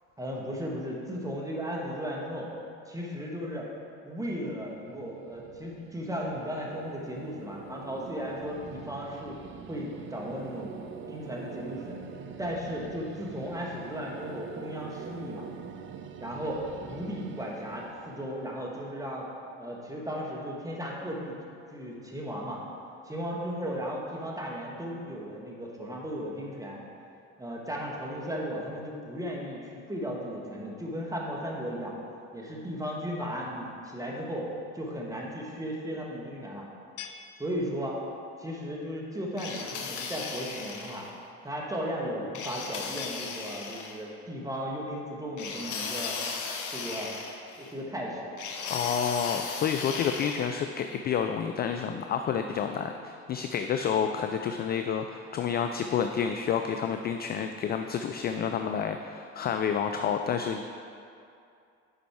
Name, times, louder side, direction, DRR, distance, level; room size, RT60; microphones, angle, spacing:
voice 1, 0.2-2.5 2.9-3.7 4.0-9.4 9.7-10.7 11.1-12.0 12.4-15.5 16.2-19.3 19.6-21.4 21.7-22.6 23.0-26.8 27.4-31.9 32.3-34.5 34.7-36.6 37.4-38.0 38.4-41.0 41.4-46.2 46.7-47.1 47.6-48.3, equal, 10° right, -2 dB, 1.6 m, -35 dB
sound 1, 4.6-19.6, right 6 dB, 35° right, 0.5 m, -44 dB
sound 2, 37.0-37.9 40.0-40.5 43.0-43.8 46.0-46.9, left 8 dB, 75° left, 0.6 m, -45 dB
sound 3, 39.4-41.1 42.3-44.0 45.4-47.7 48.4-50.5, left 5 dB, 55° left, 1.1 m, -36 dB
voice 2, 48.7-60.6, left 7 dB, 30° left, 6 dB, 0.3 m, -29 dB
7.3 x 5.1 x 4.7 m, 2.5 s
hypercardioid pair, 75°, 36 cm